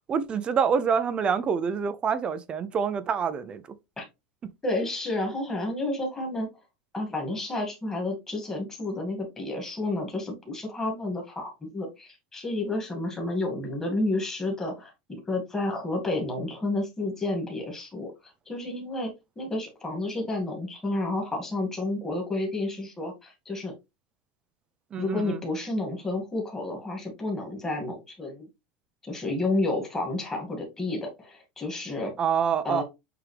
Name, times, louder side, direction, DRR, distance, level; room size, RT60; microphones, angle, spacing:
voice 1, 0.1-3.6 24.9-25.4 32.2-32.8, right 6 dB, 20° right, 0.6 m, -26 dB
voice 2, 4.6-6.5 6.9-23.7 25.0-28.5 29.0-32.1 32.6-32.8, left 2 dB, 10° left, 2.2 m, -31 dB
8.0 x 3.6 x 3.3 m
supercardioid pair, 165°, 5 cm